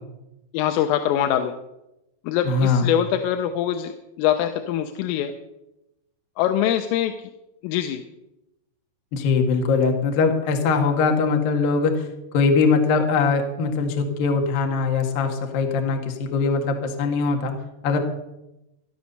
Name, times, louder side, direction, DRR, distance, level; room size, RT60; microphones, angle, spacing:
voice 1, 0.5-1.5 2.3-5.3 6.4-7.1 7.6-8.0, left 10 dB, 85° left, 6 dB, 3.4 m, -23 dB
voice 2, 2.5-2.9 9.1-12.1 12.3-17.5 17.8-18.0, left 4 dB, 55° left, 3 dB, 3.0 m, -21 dB
17.0 x 11.5 x 6.7 m, 0.92 s
omnidirectional pair, 5.7 m